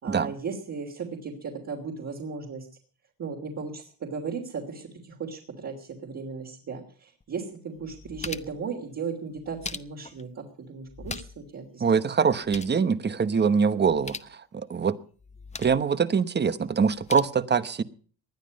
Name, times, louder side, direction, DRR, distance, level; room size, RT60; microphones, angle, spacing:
voice 1, 0.0-2.7 3.2-12.0, right 5 dB, 50° right, -1 dB, 3.1 m, -36 dB
sound 1, 7.2-7.3 7.8-8.7 9.4-10.2 10.9-11.5 11.8-11.9 12.2-12.8 13.9-14.3 15.2-15.8 16.8-17.2, left 4 dB, 20° left, 0.9 m, -40 dB
voice 2, 11.8-15.0 15.6-17.8, right 6 dB, 30° right, 15 dB, 1.0 m, -24 dB
20.0 x 11.5 x 5.2 m, 0.42 s
cardioid pair, 125°, 35 cm